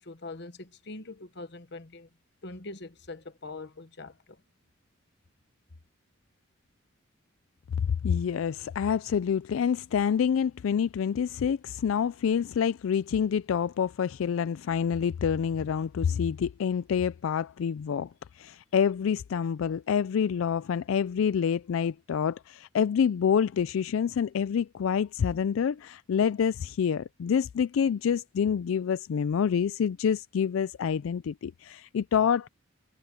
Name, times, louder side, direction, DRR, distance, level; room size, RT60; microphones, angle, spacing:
voice 1, 0.0-2.1 2.4-4.4, left 2 dB, 55° left, 1.2 m, -43 dB
voice 2, 8.0-18.1 18.3-32.5, left 7 dB, 80° left, 0.3 m, -27 dB
head